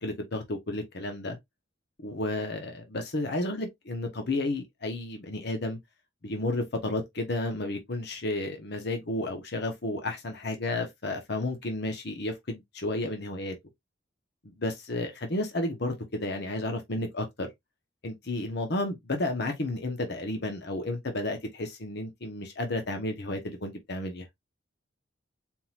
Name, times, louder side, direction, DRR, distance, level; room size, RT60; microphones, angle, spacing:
voice 1, 0.0-1.4 2.0-5.8 6.2-13.5 14.4-17.5 18.0-24.3, left 2 dB, 60° left, 1.0 m, -32 dB
4.4 x 3.8 x 2.4 m
head